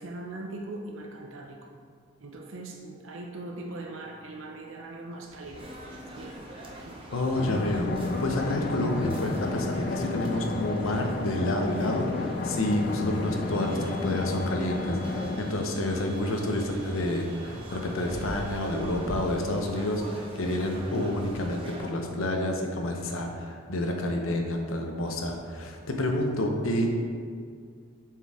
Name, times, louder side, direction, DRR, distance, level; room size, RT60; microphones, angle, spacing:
voice 1, 0.0-1.8 2.2-5.7 6.2-6.4 6.8-7.1, right 2 dB, 75° right, 1 dB, 0.6 m, -40 dB
sound 1, 5.2-21.6, equal, 20° left, 1.4 m, -46 dB
sound 2, 5.5-21.9, right 1 dB, 25° right, 0.7 m, -43 dB
voice 2, 7.1-7.9 8.2-26.9, left 1 dB, 90° left, 2 dB, 0.9 m, -29 dB
sound 3, 7.3-15.3, left 3 dB, 45° left, 0.4 m, -32 dB
7.1 x 4.6 x 3.6 m, 2.1 s
head